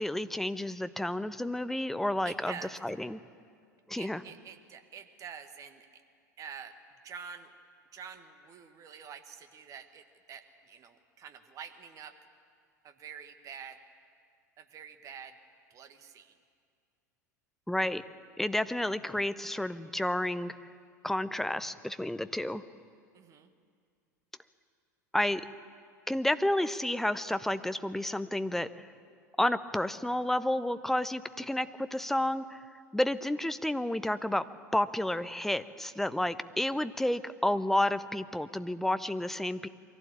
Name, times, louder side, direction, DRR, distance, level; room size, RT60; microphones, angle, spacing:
voice 1, 0.0-2.5 2.8-3.2 3.9-4.2 17.7-18.0 18.4-20.5 21.0-22.6 25.1-25.4 26.1-28.9 29.4-32.6 32.9-34.4 34.7-39.7, left 1 dB, 5° left, 13 dB, 0.7 m, -30 dB
voice 2, 2.2-2.8 4.0-6.0 6.4-6.8 7.0-7.5 7.9-12.2 12.8-13.8 14.6-15.4 15.7-16.4 23.1-23.5, right 7 dB, 35° right, 8 dB, 1.6 m, -47 dB
23.0 x 16.0 x 8.7 m, 2.2 s
figure-of-eight pair, 80°, 10 cm